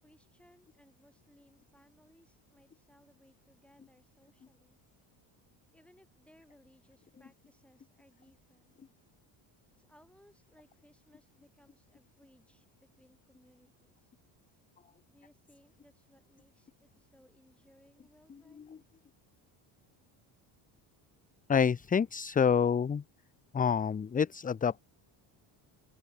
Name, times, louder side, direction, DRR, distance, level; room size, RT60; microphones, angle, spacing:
voice 1, 0.0-4.8 5.7-8.8 9.8-14.1 15.1-18.7, equal, ahead, 7.9 m, -64 dB
voice 2, 21.5-23.0 23.5-24.8, left 7 dB, 20° left, 0.5 m, -27 dB
open air
cardioid pair, 120°, 49 cm